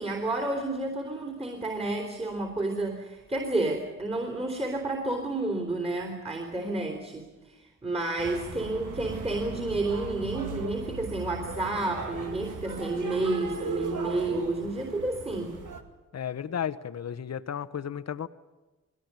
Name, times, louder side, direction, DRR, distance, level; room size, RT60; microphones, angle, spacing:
voice 1, 0.0-15.5, right 2 dB, 20° right, 3 dB, 3.4 m, -30 dB
sound 1, 8.2-15.8, right 4 dB, 75° right, 2.2 m, -38 dB
voice 2, 16.1-18.3, left 8 dB, 55° left, 14 dB, 1.0 m, -33 dB
20.5 x 17.5 x 9.5 m, 1.1 s
cardioid pair, 70°, 31 cm